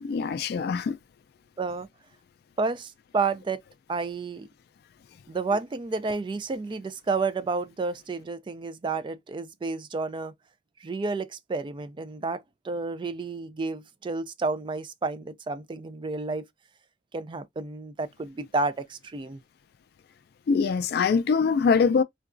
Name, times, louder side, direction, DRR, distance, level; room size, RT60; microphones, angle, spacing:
voice 1, 0.0-1.0 20.5-22.0, left 5 dB, 60° left, 0.3 m, -23 dB
voice 2, 1.6-1.9 2.6-3.6 3.9-4.5 5.3-10.3 10.8-16.5 17.1-19.4, right 3 dB, 30° right, 0.3 m, -31 dB
3.8 x 2.3 x 2.5 m
head